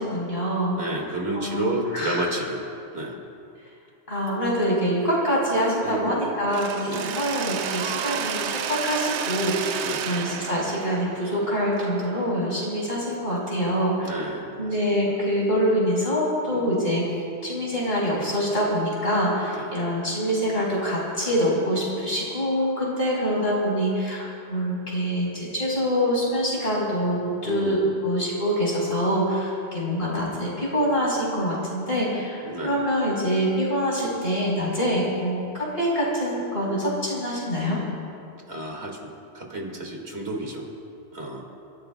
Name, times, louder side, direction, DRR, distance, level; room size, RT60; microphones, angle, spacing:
voice 1, 0.0-0.8 1.3-2.3 4.1-37.8, equal, 60° left, -5 dB, 5.0 m, -25 dB
voice 2, 0.8-2.6 2.9-3.2 5.8-6.3 6.9-7.1 9.8-10.1 14.0-14.7 16.5-16.8 19.5-19.7 27.4-27.9 32.4-32.8 38.5-39.1 39.3-40.6 41.1-41.4, right 2 dB, 70° right, -1 dB, 2.5 m, -31 dB
Mechanisms, 6.5-12.4, right 8 dB, 85° right, 0.9 m, -31 dB
29.5 x 15.0 x 2.3 m, 2.5 s
omnidirectional pair, 1.1 m